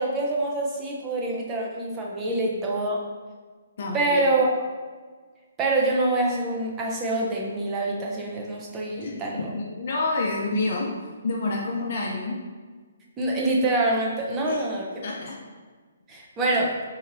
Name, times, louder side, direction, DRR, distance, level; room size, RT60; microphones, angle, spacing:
voice 1, 0.0-3.0 3.9-4.5 5.6-9.5 13.2-15.0 16.1-16.7, right 2 dB, 15° right, -2 dB, 0.6 m, -25 dB
voice 2, 3.8-4.2 9.0-10.9 11.2-12.4 14.4-14.6 15.0-15.3, left 2 dB, 55° left, -1 dB, 0.6 m, -28 dB
4.2 x 2.8 x 2.6 m, 1.4 s
hypercardioid pair, 160°, 0 cm